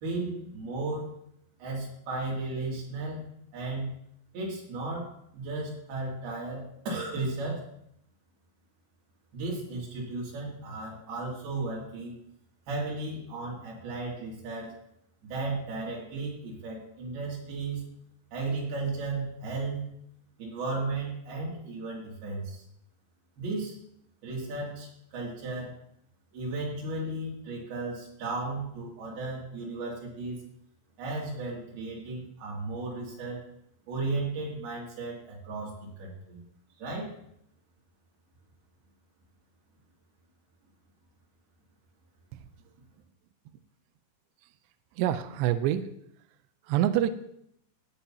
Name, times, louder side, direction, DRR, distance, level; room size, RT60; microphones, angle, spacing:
voice 1, 0.0-1.1 1.6-3.2 3.5-3.9 4.3-7.7 9.3-12.2 12.7-14.7 15.2-17.8 18.3-19.8 20.4-22.6 23.4-23.8 24.2-25.8 26.3-30.4 31.0-33.4 33.9-36.4 36.8-37.1, right 3 dB, 55° right, -3 dB, 4.3 m, -35 dB
voice 2, 45.0-45.9 46.7-47.1, right 12 dB, 90° right, 11 dB, 2.4 m, -26 dB
17.5 x 8.2 x 2.9 m, 0.73 s
omnidirectional pair, 5.6 m